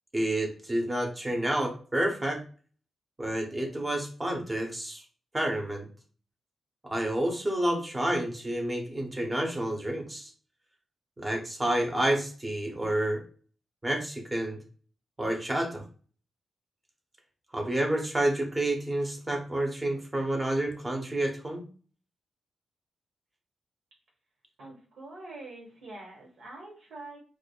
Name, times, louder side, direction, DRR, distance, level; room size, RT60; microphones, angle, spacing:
voice 1, 0.1-2.4 3.2-5.0 5.3-5.9 6.8-10.3 11.2-13.2 13.8-14.6 15.2-15.8 17.5-21.6, right 1 dB, 15° right, 2 dB, 0.9 m, -29 dB
voice 2, 24.6-27.2, right 2 dB, 70° right, -3 dB, 1.6 m, -45 dB
4.8 x 2.5 x 2.3 m, 0.40 s
wide cardioid pair, 120°, 0 cm